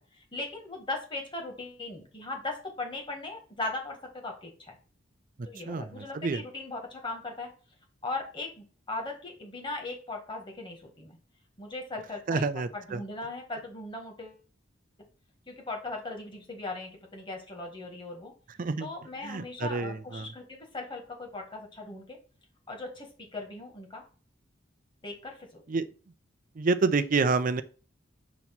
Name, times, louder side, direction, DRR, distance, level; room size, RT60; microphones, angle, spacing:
voice 1, 0.1-4.8 5.5-7.5 8.0-11.2 11.6-12.4 12.7-14.4 15.5-18.3 18.8-22.2 22.7-24.0 25.0-25.6, left 2 dB, 25° left, 1.8 m, -38 dB
voice 2, 5.7-6.4 12.3-13.0 18.6-18.9 19.2-20.3 25.7-25.9 26.6-27.6, right 4 dB, 45° right, 0.5 m, -28 dB
6.9 x 3.0 x 6.0 m
head